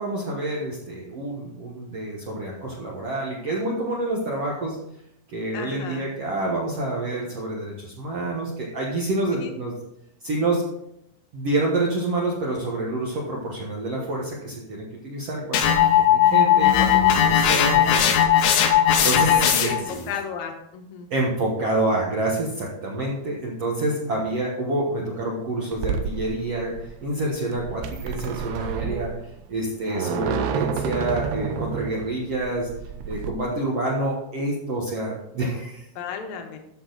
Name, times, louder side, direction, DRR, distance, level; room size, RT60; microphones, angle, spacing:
voice 1, 0.0-4.8 5.3-9.7 10.2-10.6 11.3-18.1 19.0-20.1 21.1-29.1 29.5-32.7 33.1-35.8, right 2 dB, 60° right, -4 dB, 1.7 m, -27 dB
voice 2, 5.5-6.0 9.3-9.5 17.5-18.0 19.3-19.8 20.1-21.1 36.0-36.6, left 6 dB, 65° left, 4 dB, 2.2 m, -34 dB
sound 1, 15.5-19.9, left 9 dB, 90° left, 3.2 m, -18 dB
sound 2, 25.7-33.3, right 6 dB, 90° right, 2.9 m, -30 dB
13.5 x 6.5 x 4.0 m, 0.81 s
omnidirectional pair, 4.6 m